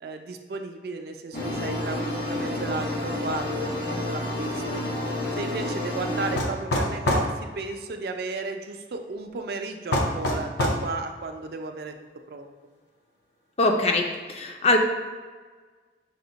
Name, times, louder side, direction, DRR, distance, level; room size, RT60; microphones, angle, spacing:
voice 1, 0.0-4.9 5.4-12.0 12.3-12.5, right 3 dB, 60° right, 5 dB, 0.4 m, -34 dB
sound 1, 1.3-6.4, left 1 dB, 60° left, 1.3 m, -30 dB
sound 2, 6.4-7.3 9.9-10.8, left 1 dB, 80° left, 0.6 m, -24 dB
voice 2, 13.6-14.8, left 2 dB, 35° left, 3 dB, 0.4 m, -22 dB
5.9 x 2.1 x 3.9 m, 1.4 s
head